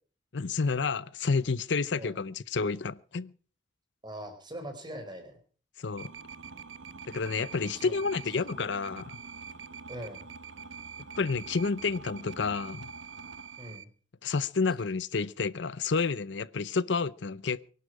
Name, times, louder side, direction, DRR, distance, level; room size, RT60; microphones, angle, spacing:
voice 1, 0.3-3.3 5.8-6.1 7.1-9.2 11.2-12.9 14.2-17.6, left 4 dB, 70° left, 0.7 m, -30 dB
voice 2, 4.0-5.4 7.7-8.0 8.4-8.5 9.9-10.3 13.6-13.9, right 1 dB, 25° right, 4.9 m, -42 dB
sound 1, 6.0-13.9, right 5 dB, 80° right, 1.0 m, -45 dB
24.0 x 11.5 x 4.8 m
head